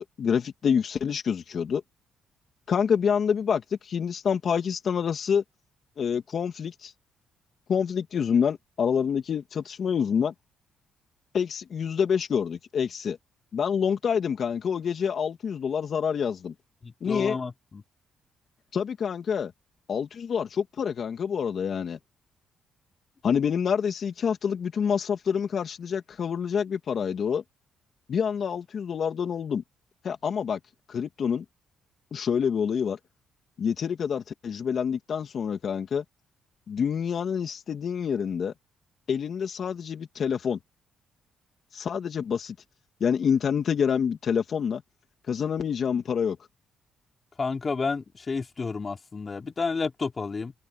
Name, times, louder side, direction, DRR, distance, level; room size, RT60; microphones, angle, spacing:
voice 1, 0.0-1.8 2.7-5.4 6.0-6.9 7.7-10.3 11.3-13.2 13.5-16.5 17.0-17.4 18.7-19.5 19.9-22.0 23.2-27.4 28.1-29.6 30.0-30.6 30.9-31.4 32.1-33.0 33.6-36.0 36.7-38.5 39.1-40.6 41.7-42.5 43.0-44.8 45.3-46.4, left 7 dB, 55° left, 2.8 m, -27 dB
voice 2, 16.8-17.8 47.4-50.5, left 4 dB, 35° left, 3.9 m, -31 dB
cardioid pair, 90°, 0 cm